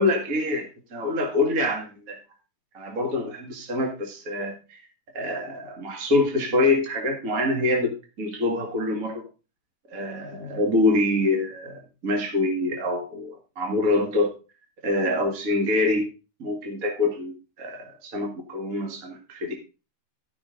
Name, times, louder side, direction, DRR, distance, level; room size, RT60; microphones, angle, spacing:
voice 1, 0.0-2.2 2.7-4.8 5.1-9.2 9.9-14.3 14.8-16.0 16.4-19.5, left 2 dB, 45° right, 2 dB, 1.1 m, -25 dB
13.5 x 5.9 x 3.8 m, 0.32 s
omnidirectional pair, 4.5 m